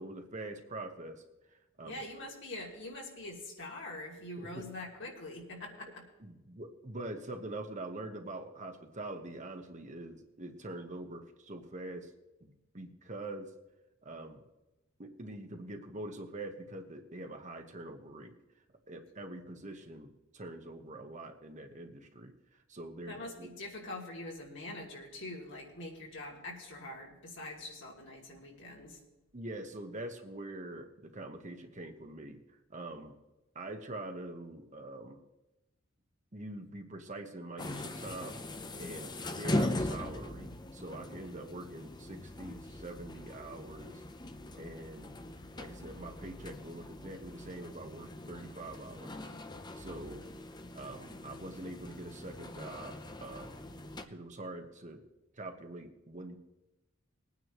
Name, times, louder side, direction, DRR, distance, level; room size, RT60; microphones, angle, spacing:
voice 1, 0.0-2.0 4.4-4.8 6.2-12.1 12.4-13.5 14.0-14.4 15.0-18.3 18.9-23.5 29.3-33.2 33.5-35.2 36.3-38.4 38.7-44.0 44.5-45.2 45.6-49.2 49.8-50.3 50.7-53.6 54.0-55.0 55.3-56.4, right 2 dB, 35° right, 5 dB, 1.1 m, -44 dB
voice 2, 1.8-6.0 23.1-29.0, left 1 dB, 60° left, -1 dB, 2.8 m, -44 dB
sound 1, 37.6-54.1, left 1 dB, 20° left, 0.7 m, -40 dB
21.0 x 9.5 x 3.1 m, 0.98 s
head